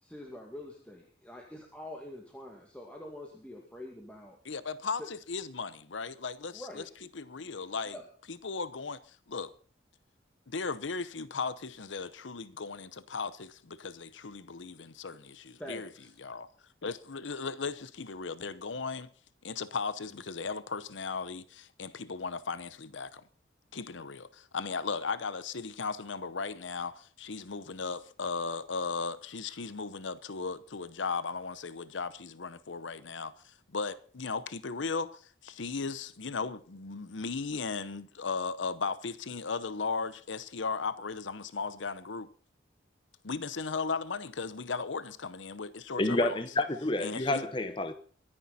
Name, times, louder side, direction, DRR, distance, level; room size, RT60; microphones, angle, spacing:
voice 1, 0.0-4.4 5.0-5.1 6.5-6.9 7.8-8.0 15.6-16.1, left 1 dB, 5° left, 2.2 m, -45 dB
voice 2, 4.4-6.8 7.1-8.0 8.3-9.5 10.5-15.9 16.2-16.5 16.8-19.1 19.4-23.2 23.7-42.3 43.2-46.4 47.0-47.5, left 4 dB, 85° left, 0.8 m, -36 dB
voice 3, 46.0-47.9, left 2 dB, 25° left, 0.9 m, -29 dB
24.0 x 10.0 x 4.2 m
head